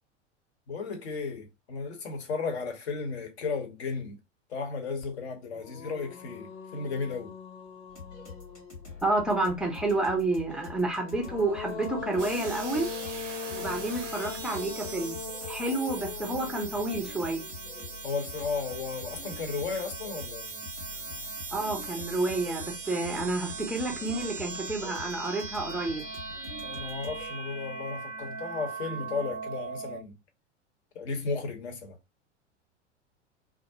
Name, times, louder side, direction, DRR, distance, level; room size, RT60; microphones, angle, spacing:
voice 1, 0.7-4.2 4.5-7.3 18.0-20.6 26.6-30.1 30.9-32.0, left 4 dB, 65° left, 0.9 m, -34 dB
sound 1, 5.0-5.1 5.5-9.2 10.8-18.1, left 6 dB, 40° left, 0.7 m, -41 dB
sound 2, 7.9-27.3, left 4 dB, 85° left, 1.1 m, -46 dB
voice 2, 9.0-12.9 13.5-15.2 15.5-17.4 21.5-26.1, right 2 dB, ahead, 0.4 m, -30 dB
sound 3, 12.2-30.0, right 4 dB, 85° right, 0.6 m, -40 dB
2.3 x 2.0 x 2.7 m
figure-of-eight pair, 85°, 36 cm